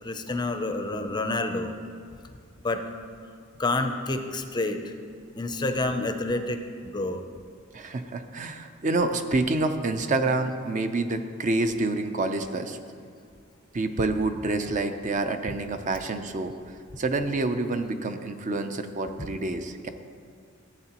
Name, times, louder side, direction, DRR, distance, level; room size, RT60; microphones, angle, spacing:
voice 1, 0.0-1.8 2.6-2.8 3.6-4.9 5.3-7.2 19.2-19.3, left 2 dB, 20° left, 7 dB, 0.5 m, -28 dB
voice 2, 7.7-12.8 13.7-16.5 17.0-19.9, right 2 dB, 40° right, 8 dB, 0.5 m, -27 dB
15.0 x 7.9 x 2.9 m, 2.2 s
head